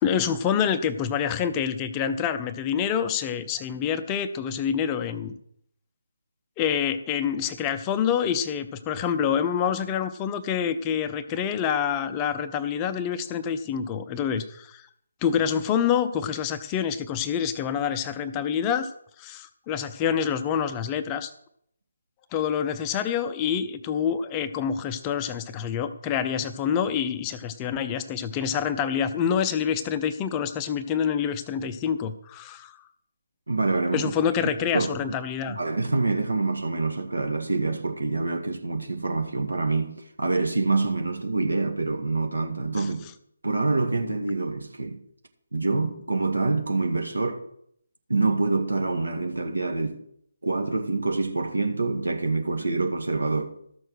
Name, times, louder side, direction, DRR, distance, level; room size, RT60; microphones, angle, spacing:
voice 1, 0.0-5.4 6.6-14.9 15.2-18.9 19.2-21.3 22.3-32.8 33.9-35.6 42.8-42.9, left 8 dB, 15° left, 0.6 m, -27 dB
voice 2, 33.5-34.1 34.4-35.1 35.5-43.1 43.4-45.0 45.5-47.4 48.1-50.0 50.4-53.5, right 3 dB, 70° right, 1.8 m, -26 dB
13.0 x 6.5 x 6.4 m
figure-of-eight pair, 145°, 0 cm